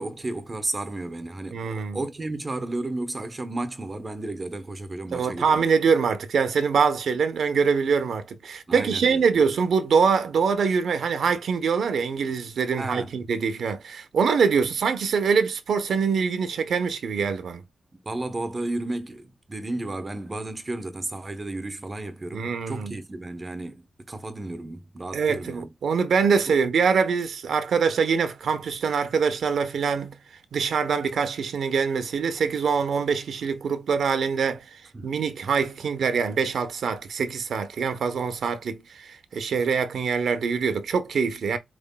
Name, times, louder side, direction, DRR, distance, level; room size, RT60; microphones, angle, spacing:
voice 1, 0.0-5.7 8.7-9.3 12.8-13.2 18.0-25.7 26.5-26.6 34.9-35.2, right 2 dB, 30° right, 0.9 m, -33 dB
voice 2, 1.5-2.0 5.1-17.6 22.3-23.0 25.1-30.2 30.5-41.6, right 6 dB, 80° right, 0.9 m, -24 dB
5.2 x 3.2 x 2.2 m
cardioid pair, 80°, 0 cm